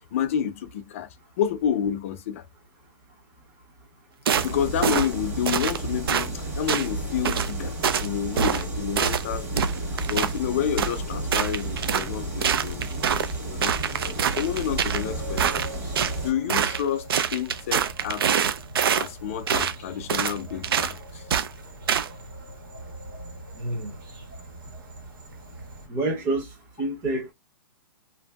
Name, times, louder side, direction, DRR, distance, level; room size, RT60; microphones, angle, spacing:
voice 1, 0.1-2.4 4.4-12.9 13.5-15.7 16.2-18.4 19.0-21.2, left 9 dB, 35° left, 0.4 m, -29 dB
sound 1, 4.3-16.3, right 2 dB, 35° right, 1.3 m, -32 dB
sound 2, 4.3-4.5 4.8-5.1 5.5-5.8 6.1-6.3 6.7-6.9 7.2-7.5 7.8-8.1 8.4-8.6 9.0-9.2 9.6-10.3 10.8-10.9 11.3-12.1 12.4-13.3 13.6-15.0 15.4-16.1 16.5-16.8 17.1-19.1 19.5-19.7 20.1-20.4 20.6-20.9 21.3-21.5 21.9-22.1, right 8 dB, 90° right, 0.5 m, -24 dB
sound 3, 15.0-25.9, right 1 dB, 65° right, 1.4 m, -42 dB
voice 2, 23.5-24.0 25.9-27.3, right 2 dB, 15° right, 0.7 m, -28 dB
3.1 x 2.6 x 2.2 m
hypercardioid pair, 175°, 12 cm